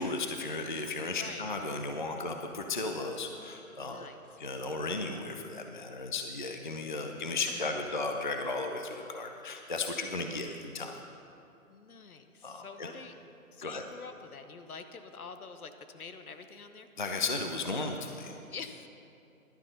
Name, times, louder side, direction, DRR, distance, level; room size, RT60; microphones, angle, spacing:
voice 1, 0.0-4.1 4.4-11.0 12.4-12.9 13.6-13.8 17.0-18.3, left 3 dB, 35° left, 4 dB, 0.4 m, -35 dB
voice 2, 1.0-1.4 3.8-4.4 7.5-7.8 10.2-10.4 11.7-13.1 13.5-16.9 18.5-18.9, left 5 dB, 75° left, 8 dB, 1.0 m, -46 dB
11.5 x 9.6 x 5.2 m, 2.7 s
figure-of-eight pair, 155°, 44 cm